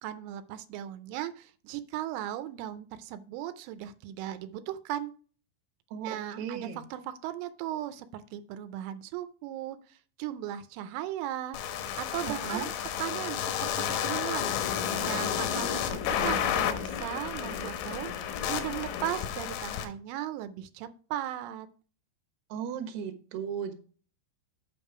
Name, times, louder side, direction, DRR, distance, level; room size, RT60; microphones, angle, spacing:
voice 1, 0.0-5.1 6.0-12.7 13.0-13.7 14.0-14.6 15.0-21.7, right 12 dB, 85° right, 11 dB, 3.1 m, -37 dB
voice 2, 6.4-6.8 12.4-12.7 22.5-23.7, right 8 dB, 70° right, 5 dB, 2.9 m, -35 dB
sound 1, 11.5-19.9, left 9 dB, 90° left, 3.6 m, -31 dB
8.7 x 5.4 x 4.7 m, 0.40 s
omnidirectional pair, 5.5 m